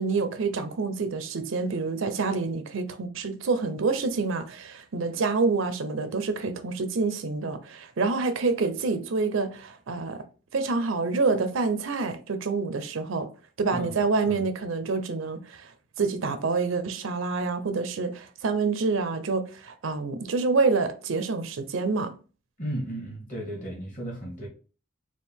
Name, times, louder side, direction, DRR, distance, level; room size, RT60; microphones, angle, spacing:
voice 1, 0.0-10.2 10.5-13.3 13.6-15.7 16.0-22.1, right 4 dB, 70° right, 0.5 m, -27 dB
voice 2, 22.6-24.5, right 1 dB, 40° left, 1.7 m, -34 dB
4.4 x 2.4 x 3.5 m
head